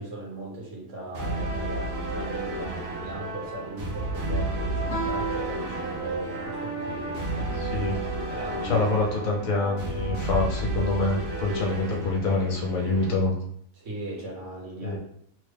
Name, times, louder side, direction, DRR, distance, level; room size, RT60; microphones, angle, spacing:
voice 1, 0.0-7.5 7.8-9.0 13.7-15.0, right 1 dB, 50° right, -4 dB, 1.3 m, -38 dB
sound 1, 1.1-13.1, right 2 dB, 75° right, 1.3 m, -32 dB
Guitar, 4.9-7.3, right 2 dB, 35° left, 0.8 m, -35 dB
voice 2, 7.6-8.0 8.6-13.3 14.8-15.0, left 3 dB, 60° left, -1 dB, 1.1 m, -26 dB
3.3 x 2.2 x 3.3 m, 0.67 s
omnidirectional pair, 1.7 m